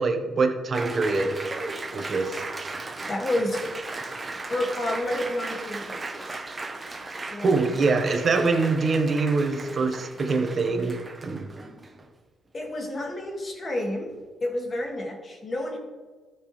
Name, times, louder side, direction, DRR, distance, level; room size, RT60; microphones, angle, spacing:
voice 1, 0.0-1.4 1.9-2.4 7.4-11.5, right 3 dB, 45° right, 4 dB, 1.3 m, -24 dB
Applause, 0.7-12.1, right 3 dB, 25° right, 1.2 m, -36 dB
voice 2, 3.1-3.6 4.5-6.0 6.3-6.4 7.2-7.6 12.5-14.1 14.4-15.8, left 1 dB, 35° left, 1 dB, 2.2 m, -30 dB
14.0 x 6.1 x 3.3 m, 1.5 s
cardioid pair, 90°, 0 cm